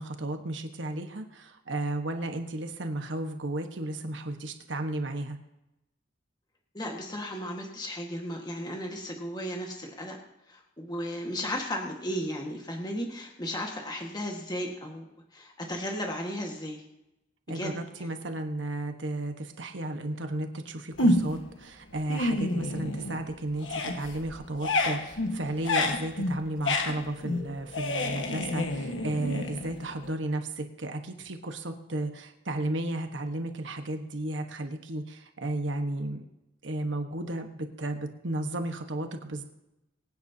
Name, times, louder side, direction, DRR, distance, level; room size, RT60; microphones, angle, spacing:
voice 1, 0.0-5.4 17.5-36.3 36.6-39.4, right 1 dB, 75° right, 6 dB, 1.3 m, -34 dB
voice 2, 6.7-10.2 10.5-15.0 15.3-16.8 17.5-18.1, equal, 20° left, 1 dB, 1.6 m, -35 dB
sound 1, 21.0-21.5 21.9-23.3 23.6-30.1, left 2 dB, 85° left, 1.4 m, -29 dB
24.0 x 9.6 x 2.8 m, 0.91 s
head